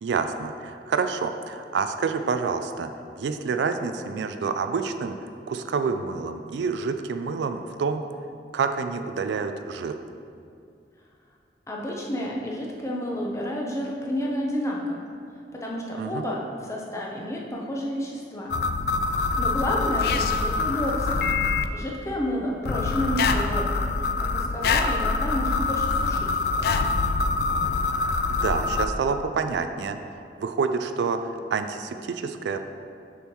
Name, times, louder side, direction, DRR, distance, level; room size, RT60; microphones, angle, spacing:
voice 1, 0.0-2.9 3.2-8.0 8.5-10.0 16.0-16.3 28.3-30.0 30.4-32.6, right 5 dB, 80° right, 8 dB, 0.3 m, -28 dB
voice 2, 11.7-15.0 15.5-18.6 19.4-21.4 21.7-26.8, equal, 15° left, -2 dB, 0.7 m, -30 dB
sound 1, 18.5-21.7 22.7-28.9, left 4 dB, 55° left, 0.3 m, -25 dB
6.7 x 6.3 x 3.0 m, 2.4 s
head